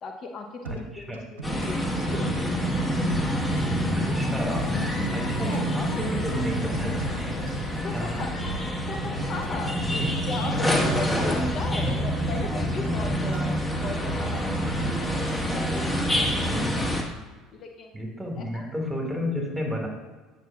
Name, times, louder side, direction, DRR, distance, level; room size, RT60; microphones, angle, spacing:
voice 1, 0.0-1.2 1.6-2.3 4.1-4.2 5.5-5.6 7.8-8.3 8.9-13.5 13.8-14.5 15.5-16.3 17.5-17.9 18.4-18.5, left 4 dB, 45° left, 3 dB, 0.8 m, -37 dB
voice 2, 0.6-1.2 3.9-4.7 5.1-7.3 7.9-8.3 9.5-10.2 10.5-10.7 11.8-11.9 13.1-13.3 14.6-14.9 16.5-16.9 17.9-19.9, equal, 10° right, 1 dB, 2.0 m, -32 dB
sound 1, 0.6-1.8 2.1-3.7 4.1-5.7 6.0-7.6 8.0-9.6 9.9-11.5 11.9-13.5 13.8-15.4 15.8-16.2, right 4 dB, 90° right, 0.6 m, -39 dB
sound 2, 1.4-17.0, equal, 15° left, 1.4 m, -27 dB
sound 3, 4.4-11.0, left 4 dB, 80° left, 0.9 m, -40 dB
9.1 x 6.0 x 2.4 m, 1.3 s
hypercardioid pair, 70°, 0 cm